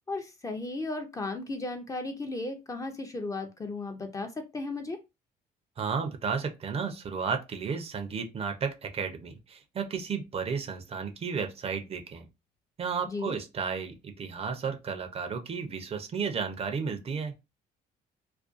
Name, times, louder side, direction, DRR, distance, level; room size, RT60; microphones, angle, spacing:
voice 1, 0.1-5.0 13.1-13.4, left 2 dB, 20° left, 0.5 m, -35 dB
voice 2, 5.8-12.3 12.8-17.3, right 6 dB, 35° right, 0.5 m, -33 dB
2.4 x 2.2 x 2.4 m
cardioid pair, 110°, 17 cm